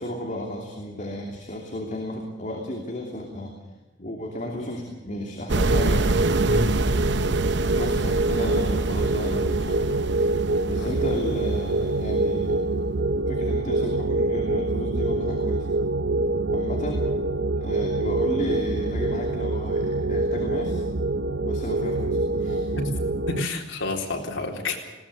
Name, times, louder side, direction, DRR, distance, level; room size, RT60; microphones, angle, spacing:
voice 1, 0.0-3.5 4.0-6.1 7.7-10.1 10.7-12.6 13.3-15.7 16.5-17.1 17.6-20.8 21.4-22.8, left 1 dB, 40° left, 1 dB, 2.9 m, -33 dB
sound 1, 5.5-23.4, right 2 dB, 60° right, 0.8 m, -24 dB
voice 2, 6.4-6.8 10.8-10.9 22.8-22.9 23.3-24.8, left 2 dB, 90° left, 2 dB, 3.9 m, -29 dB
20.5 x 17.5 x 8.1 m, 1.1 s
head